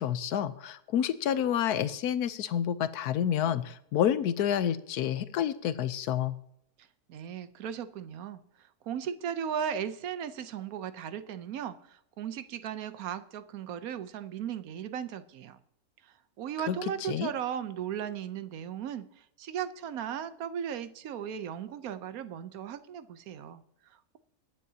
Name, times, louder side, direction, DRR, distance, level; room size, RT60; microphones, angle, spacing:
voice 1, 0.0-6.4 16.7-17.3, left 9 dB, 85° left, 13 dB, 1.2 m, -29 dB
voice 2, 6.8-15.6 16.0-24.2, right 8 dB, 70° right, 12 dB, 1.2 m, -37 dB
21.0 x 9.3 x 2.8 m, 0.75 s
omnidirectional pair, 1.6 m